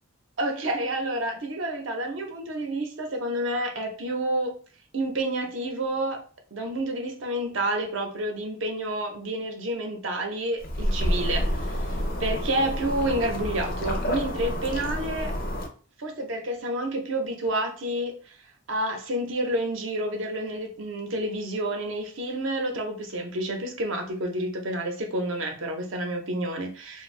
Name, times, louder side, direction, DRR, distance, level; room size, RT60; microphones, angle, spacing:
voice 1, 0.4-4.6 4.9-6.2 6.5-11.9 12.2-15.3 16.0-18.4 18.7-27.0, right 1 dB, 65° right, 3 dB, 0.7 m, -29 dB
sound 1, 10.6-15.7, equal, 45° left, 0.5 m, -29 dB
2.6 x 2.2 x 3.1 m, 0.39 s
head